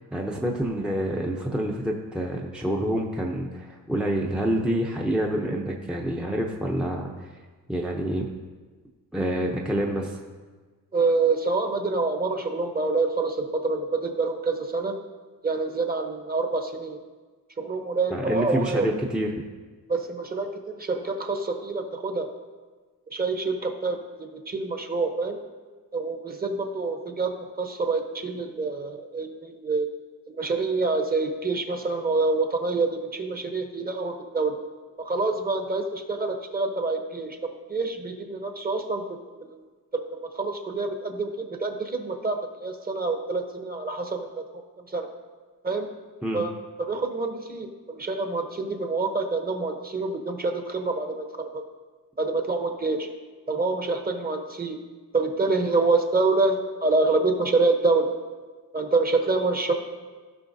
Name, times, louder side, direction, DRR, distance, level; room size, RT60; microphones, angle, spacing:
voice 1, 0.0-7.1 7.7-8.3 9.1-10.2 18.1-19.4 46.2-46.4, right 1 dB, ahead, -1 dB, 0.6 m, -27 dB
voice 2, 10.9-14.9 15.4-17.0 17.6-18.9 19.9-22.3 23.1-25.4 25.9-27.3 27.6-29.9 30.3-34.5 35.0-37.4 37.7-39.6 39.9-44.3 44.9-45.1 45.6-45.9 46.3-46.5 46.8-51.2 52.2-53.1 53.5-54.8 55.1-58.1 58.7-59.7, right 3 dB, 25° right, 5 dB, 0.9 m, -26 dB
15.5 x 5.5 x 2.7 m, 1.4 s
cardioid pair, 125°, 37 cm